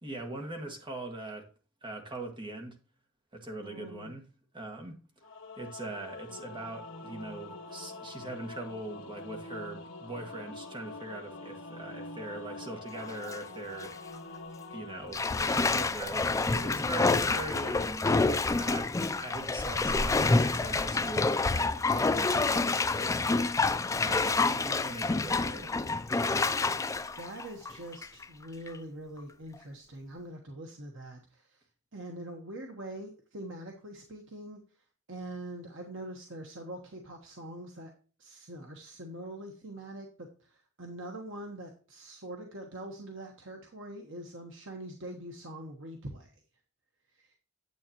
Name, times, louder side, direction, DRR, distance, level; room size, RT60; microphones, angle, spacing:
voice 1, 0.0-1.5 1.8-2.8 3.3-4.2 4.5-4.9 5.6-13.9 14.7-18.1 18.6-23.4 24.0-25.7, right 2 dB, 25° right, 1.7 m, -41 dB
voice 2, 3.6-4.2 27.2-31.6 31.9-34.6 35.1-37.9 38.2-46.3 47.1-47.4, right 1 dB, 70° right, 1.2 m, -43 dB
Singing / Musical instrument, 5.2-16.5, left 2 dB, 65° left, 0.9 m, -45 dB
Bathtub (filling or washing), 13.0-13.4 13.8-13.9 15.1-28.2 28.7-28.8, left 3 dB, 15° left, 0.3 m, -28 dB
9.4 x 8.0 x 2.9 m
head